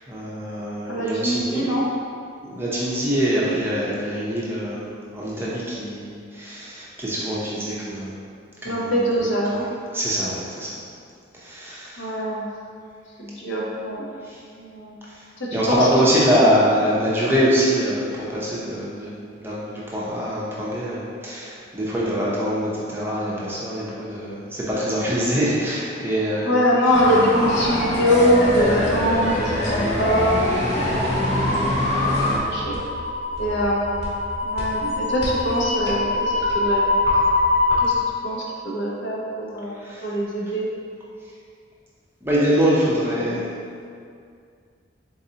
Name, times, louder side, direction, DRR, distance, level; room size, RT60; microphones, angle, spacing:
voice 1, 0.1-1.7 2.4-8.1 8.6-8.9 9.9-10.7 11.3-12.1 14.2-14.4 15.1-15.3 15.5-26.6 31.6-31.8 39.8-40.0 42.2-43.5, equal, 10° right, -7 dB, 0.6 m, -24 dB
voice 2, 0.9-1.8 8.6-9.6 12.0-12.5 13.2-14.0 14.6-15.1 15.4-15.9 26.4-31.6 32.1-32.8 33.4-34.1 34.4-36.9 37.8-37.9 38.2-40.7, equal, 70° left, -4 dB, 0.8 m, -23 dB
sound 1, 26.9-32.4, left 1 dB, 35° left, 0.6 m, -23 dB
sound 2, 28.4-38.1, left 2 dB, 55° left, 1.3 m, -25 dB
4.0 x 3.9 x 2.8 m, 2.3 s
head